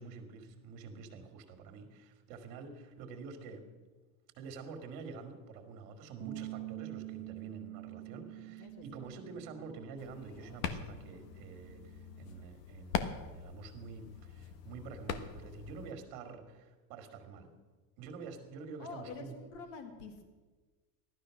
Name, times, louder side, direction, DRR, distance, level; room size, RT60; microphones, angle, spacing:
voice 1, 0.0-3.6 4.3-17.5 18.0-19.4, right 4 dB, 40° right, 6 dB, 2.4 m, -48 dB
Bass guitar, 6.2-12.5, right 23 dB, 90° right, 0.6 m, -47 dB
voice 2, 8.1-9.0 18.8-20.2, left 4 dB, 40° left, 6 dB, 2.1 m, -48 dB
sound 1, 10.0-15.9, left 7 dB, 75° left, 1.5 m, -42 dB
15.5 x 12.5 x 6.5 m, 1.3 s
supercardioid pair, 165°, 49 cm